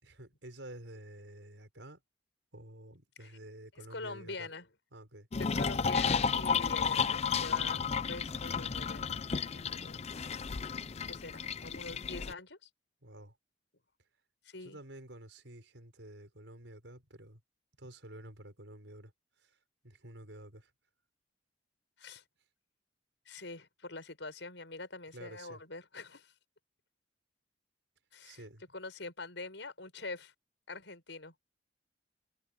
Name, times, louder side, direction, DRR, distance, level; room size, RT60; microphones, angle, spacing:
voice 1, 0.0-2.0 2.5-4.5 4.9-5.3 13.0-13.4 14.6-17.4 17.8-19.1 19.4-19.6 19.8-20.7 25.1-25.6 28.2-28.6, right 1 dB, 75° right, 6.0 m, -50 dB
voice 2, 3.9-4.7 5.4-9.1 9.5-10.0 10.3-10.5 11.1-12.7 14.4-14.8 22.0-22.2 23.3-26.3 28.1-28.4 28.7-30.3 30.7-31.3, left 3 dB, 75° left, 6.6 m, -45 dB
sound 1, 5.3-12.3, left 6 dB, 35° left, 0.5 m, -33 dB
head